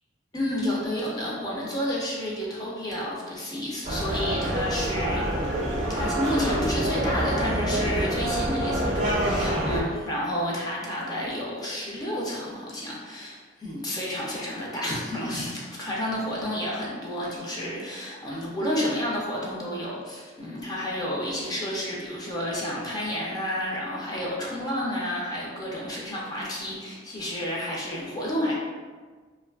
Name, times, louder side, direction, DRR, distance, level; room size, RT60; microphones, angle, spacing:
voice 1, 0.3-5.6 5.9-28.5, left 1 dB, 20° left, -4 dB, 0.4 m, -30 dB
sound 1, 3.8-9.8, right 1 dB, 40° right, 0.4 m, -26 dB
2.4 x 2.3 x 2.3 m, 1.4 s
head